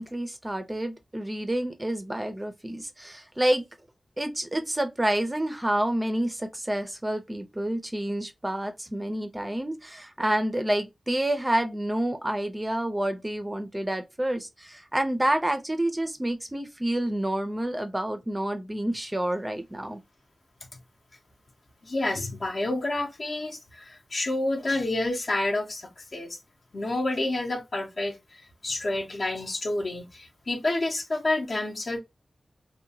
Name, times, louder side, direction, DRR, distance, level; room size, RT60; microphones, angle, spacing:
voice 1, 0.0-3.6 4.2-20.0, right 1 dB, 15° right, 0.4 m, -28 dB
voice 2, 21.8-26.4 26.7-28.2 28.6-32.0, left 2 dB, 50° left, 0.6 m, -29 dB
2.7 x 2.1 x 2.7 m
wide cardioid pair, 110°, 0 cm